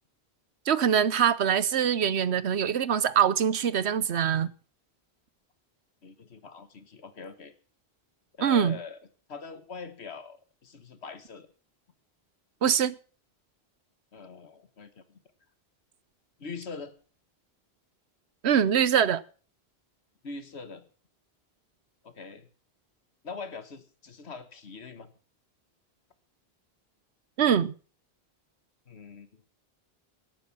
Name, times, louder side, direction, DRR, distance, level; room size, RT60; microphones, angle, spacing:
voice 1, 0.7-4.5 8.4-8.8 12.6-13.0 18.4-19.2 27.4-27.7, right 8 dB, 90° right, 1.1 m, -23 dB
voice 2, 6.0-7.5 8.4-9.0 9.3-11.5 14.1-15.2 16.4-16.9 20.2-20.9 22.0-22.5 23.2-25.1 28.9-29.5, left 4 dB, 85° left, 1.6 m, -43 dB
17.5 x 9.2 x 5.9 m
omnidirectional pair, 1.1 m